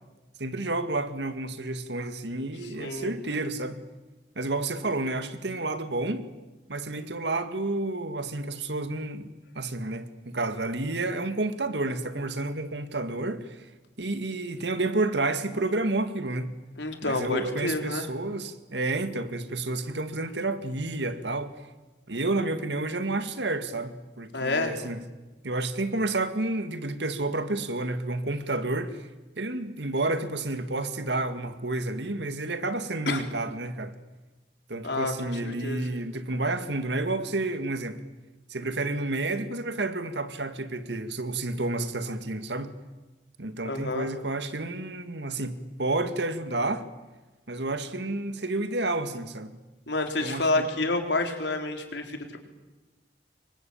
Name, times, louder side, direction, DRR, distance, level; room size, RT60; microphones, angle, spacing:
voice 1, 0.4-3.8 4.4-6.2 6.7-9.3 9.6-13.6 14.0-16.5 17.0-21.5 22.1-25.0 25.4-29.1 29.4-33.9 34.7-38.0 38.5-42.7 43.4-46.9 47.5-49.5 50.2-50.7, right 2 dB, 80° right, 2.1 m, -30 dB
voice 2, 2.8-3.1 16.8-18.1 24.3-24.8 33.1-33.2 34.8-36.0 43.6-44.1 49.9-52.4, left 2 dB, 90° left, 4.1 m, -29 dB
26.5 x 24.0 x 8.8 m
head